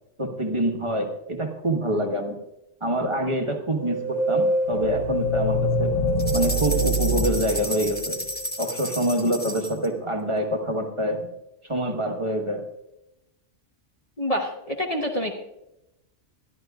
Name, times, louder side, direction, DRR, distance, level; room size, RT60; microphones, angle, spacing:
voice 1, 0.2-2.4 2.8-6.0 6.3-8.2 8.6-11.3 11.6-12.7, right 1 dB, 25° right, 2 dB, 1.3 m, -26 dB
sound 1, 3.8-8.4, equal, 75° left, 1.5 m, -24 dB
sound 2, 6.2-9.9, equal, 10° left, 1.0 m, -32 dB
voice 2, 14.2-15.3, equal, 35° left, 1 dB, 1.1 m, -27 dB
21.5 x 12.5 x 2.4 m, 0.89 s
omnidirectional pair, 1.2 m